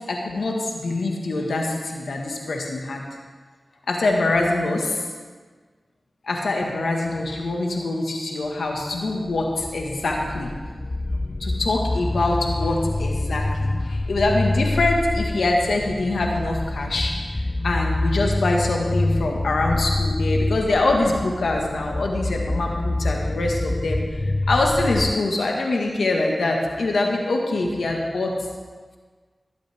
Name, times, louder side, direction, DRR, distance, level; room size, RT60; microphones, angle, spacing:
voice 1, 0.1-3.0 3.9-5.0 6.3-10.5 11.4-17.3 17.6-24.0 24.5-28.3, left 2 dB, 85° left, 0 dB, 1.6 m, -24 dB
sound 1, 8.9-25.1, left 2 dB, 30° left, 0.4 m, -26 dB
17.0 x 11.5 x 3.5 m, 1.5 s
cardioid pair, 45°, 0 cm